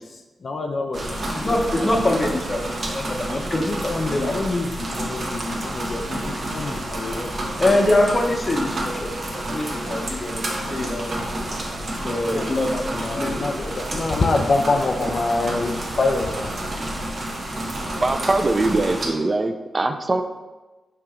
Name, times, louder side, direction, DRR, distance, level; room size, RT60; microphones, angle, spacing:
voice 1, 0.4-1.0 1.4-1.6 1.8-1.9 3.5-7.3 12.3-16.5, left 3 dB, 55° left, 3 dB, 0.4 m, -26 dB
sound 1, 0.9-19.1, right 1 dB, 55° right, 0.9 m, -29 dB
voice 2, 1.3-2.6 2.9-4.3 7.6-9.1 9.5-10.4 10.7-11.1 12.0-12.7 13.1-13.8, left 1 dB, 35° left, 1 dB, 0.8 m, -23 dB
voice 3, 18.0-20.2, right 2 dB, 35° right, 7 dB, 0.3 m, -22 dB
4.9 x 2.8 x 3.6 m, 1.2 s
cardioid pair, 50°, 0 cm